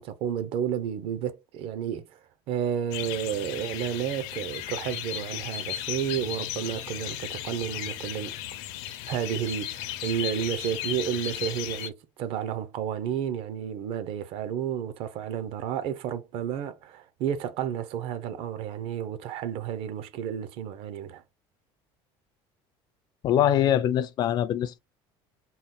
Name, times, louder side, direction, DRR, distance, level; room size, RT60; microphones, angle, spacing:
voice 1, 0.0-2.2 2.5-8.3 9.1-21.2, right 9 dB, 60° right, 0.6 m, -31 dB
sound 1, 2.9-11.9, left 12 dB, 80° left, 0.6 m, -35 dB
voice 2, 23.2-24.8, left 10 dB, 40° left, 0.4 m, -23 dB
4.0 x 2.2 x 3.7 m
cardioid pair, 155°, 11 cm